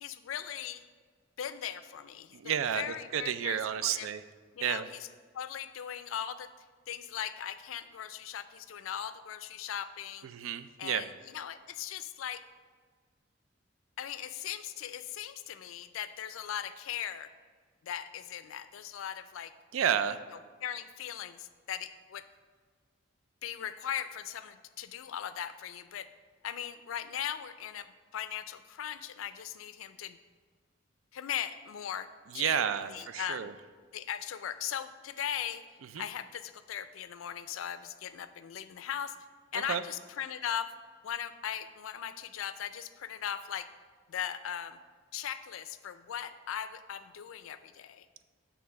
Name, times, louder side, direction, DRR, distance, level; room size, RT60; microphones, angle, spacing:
voice 1, 0.0-0.8 1.4-4.1 4.5-5.1 5.3-6.5 6.9-10.3 10.8-12.4 14.0-17.3 17.8-19.5 20.6-22.3 23.4-26.1 26.4-30.2 31.1-33.5 33.9-35.6 36.0-39.2 39.5-40.7 41.0-43.7 44.1-44.8 45.1-48.1, left 9 dB, 90° left, 12 dB, 0.4 m, -39 dB
voice 2, 2.3-2.8 3.1-4.2 4.6-4.9 10.3-11.0 19.7-20.2 32.3-33.5 35.9-36.0 39.5-39.8, right 8 dB, 90° right, 12 dB, 0.4 m, -31 dB
7.4 x 3.4 x 5.7 m, 1.5 s
head